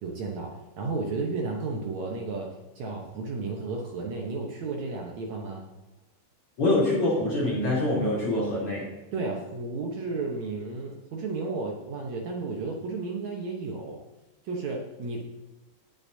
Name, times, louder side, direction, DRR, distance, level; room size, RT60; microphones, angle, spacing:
voice 1, 0.0-5.7 9.1-14.0 14.5-15.2, right 3 dB, 65° right, 0 dB, 2.0 m, -33 dB
voice 2, 6.6-8.9, left 1 dB, 35° left, -6 dB, 4.0 m, -25 dB
17.5 x 7.2 x 2.7 m, 1.1 s
omnidirectional pair, 4.3 m